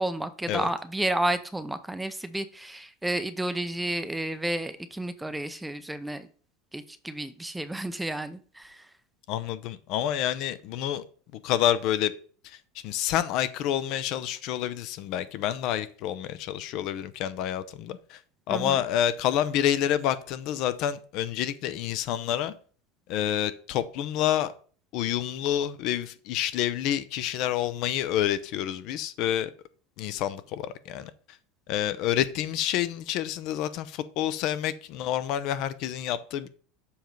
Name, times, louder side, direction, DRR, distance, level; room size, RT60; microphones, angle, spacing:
voice 1, 0.0-6.3 6.7-8.8 18.5-18.8, right 1 dB, 5° right, 0.5 m, -31 dB
voice 2, 9.3-11.0 11.4-12.1 12.4-12.6 12.8-18.2 18.5-22.5 23.1-24.5 24.9-29.5 30.0-31.1 31.7-36.5, left 11 dB, 55° left, 0.6 m, -28 dB
7.0 x 3.1 x 5.2 m
supercardioid pair, 120°, 0 cm